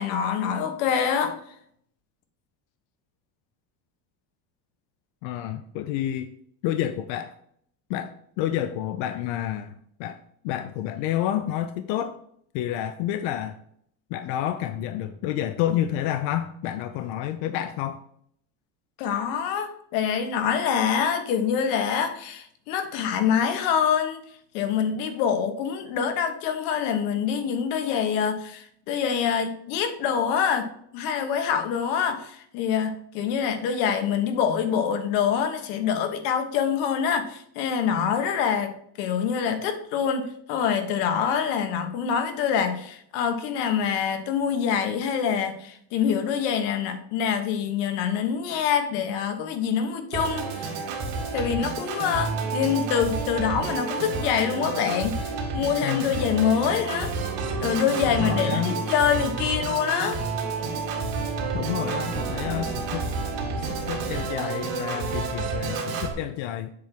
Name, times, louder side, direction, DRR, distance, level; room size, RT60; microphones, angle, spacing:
voice 1, 0.0-1.4 19.0-24.2 24.5-30.7 30.9-38.7 39.0-50.8 51.3-57.1 57.6-60.2, left 7 dB, 90° left, 7 dB, 1.3 m, -25 dB
voice 2, 5.2-6.3 6.6-7.3 7.9-10.2 10.4-12.2 12.5-13.6 14.1-18.0 55.8-56.3 58.1-58.8 61.5-63.1 63.6-66.7, left 11 dB, 65° left, 9 dB, 0.6 m, -29 dB
Organ, 50.1-66.1, right 4 dB, 70° right, 2.3 m, -30 dB
7.6 x 3.4 x 5.8 m, 0.68 s
cardioid pair, 170°, 49 cm